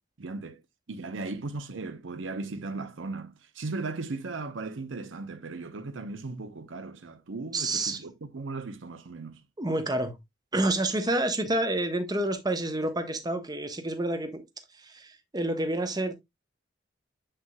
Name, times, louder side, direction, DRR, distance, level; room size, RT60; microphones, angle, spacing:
voice 1, 0.2-0.6 0.9-9.4, right 3 dB, 75° right, 0.7 m, -37 dB
voice 2, 7.5-8.0 9.6-10.2 10.5-14.4 14.7-16.1, right 1 dB, 20° right, 0.9 m, -28 dB
7.3 x 6.7 x 2.2 m
head